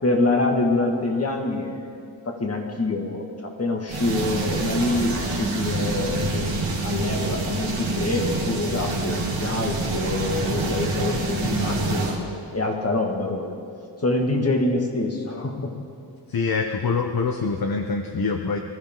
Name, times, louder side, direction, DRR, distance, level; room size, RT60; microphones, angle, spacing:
voice 1, 0.0-1.8 2.2-6.5 6.8-12.2 12.5-13.5 14.0-15.7, left 2 dB, 35° left, 1 dB, 2.2 m, -25 dB
sound 1, 3.9-12.2, right 2 dB, 80° right, 3.1 m, -26 dB
voice 2, 16.3-18.6, left 4 dB, 50° left, 4 dB, 0.9 m, -25 dB
23.5 x 14.5 x 3.9 m, 2.3 s
wide cardioid pair, 120°, 45 cm